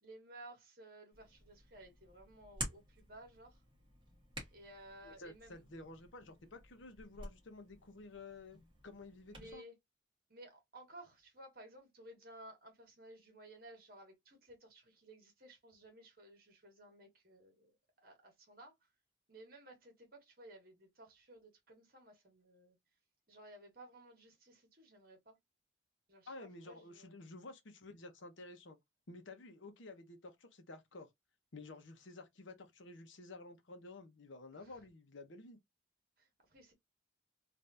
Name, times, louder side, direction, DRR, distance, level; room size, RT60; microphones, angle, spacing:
voice 1, 0.0-3.6 4.5-5.6 9.3-9.7 10.3-17.7 18.0-18.7 19.3-22.8 23.3-25.3 26.1-27.2 34.6-34.8 36.2-36.7, right 1 dB, 50° right, 1.5 m, -57 dB
Hands, 1.1-9.5, right 2 dB, 25° right, 1.4 m, -51 dB
voice 2, 5.0-9.6 26.3-28.8 29.1-31.1 31.5-35.6, left 2 dB, 75° left, 0.9 m, -52 dB
3.4 x 2.6 x 2.6 m
head